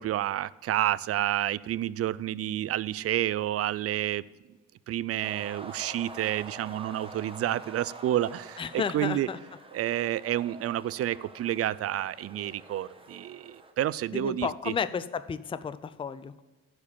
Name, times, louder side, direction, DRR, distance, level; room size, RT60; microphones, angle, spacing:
voice 1, 0.0-4.3 4.9-9.3 9.7-14.7, right 12 dB, 50° right, 20 dB, 0.4 m, -29 dB
sound 1, 5.2-13.7, right 2 dB, 20° right, 1.3 m, -47 dB
voice 2, 8.6-9.4 14.1-16.4, left 6 dB, 20° left, 13 dB, 0.4 m, -32 dB
12.0 x 4.9 x 7.2 m, 1.3 s
cardioid pair, 90°, 30 cm